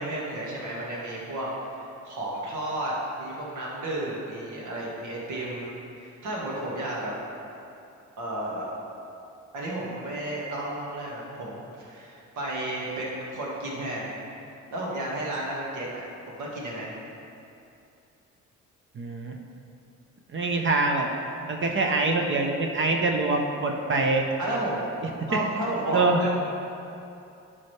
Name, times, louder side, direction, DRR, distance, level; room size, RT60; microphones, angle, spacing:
voice 1, 0.0-7.1 8.2-8.7 9.5-14.1 14.7-17.0 24.4-24.8 25.3-26.3, right 1 dB, 85° right, -4 dB, 1.9 m, -32 dB
voice 2, 18.9-19.4 20.3-21.1 21.5-24.2 25.9-26.2, right 3 dB, 40° right, 2 dB, 0.8 m, -24 dB
11.5 x 5.7 x 3.3 m, 2.7 s
cardioid pair, 90°, 30 cm